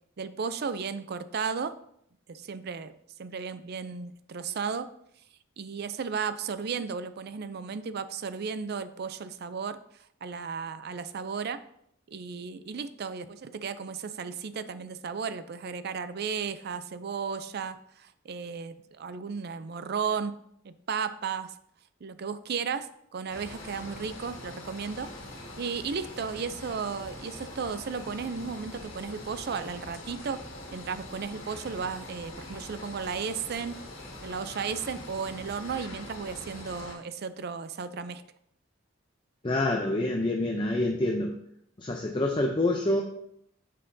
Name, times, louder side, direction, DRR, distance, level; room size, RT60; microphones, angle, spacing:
voice 1, 0.2-1.7 2.3-2.9 3.2-4.9 5.6-9.8 10.2-11.6 12.1-20.4 20.6-21.5 22.0-25.1 25.6-30.4 30.7-33.8 34.2-38.2, right 5 dB, 50° right, 12 dB, 0.4 m, -34 dB
sound 1, 23.3-36.9, left 1 dB, 75° left, 1.7 m, -43 dB
voice 2, 39.4-41.3 41.8-43.0, left 2 dB, 25° left, 1 dB, 0.5 m, -27 dB
9.0 x 6.5 x 2.7 m, 0.72 s
head